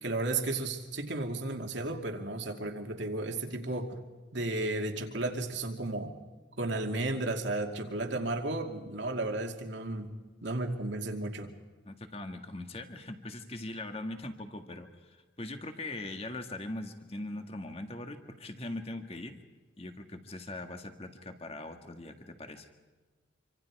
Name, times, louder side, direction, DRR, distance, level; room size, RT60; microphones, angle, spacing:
voice 1, 0.0-4.0 4.3-6.2 6.6-11.5, right 2 dB, 65° right, 4 dB, 2.5 m, -34 dB
voice 2, 11.9-19.4 19.8-22.7, left 2 dB, 30° left, 6 dB, 1.9 m, -41 dB
27.0 x 25.5 x 4.8 m, 1.3 s
head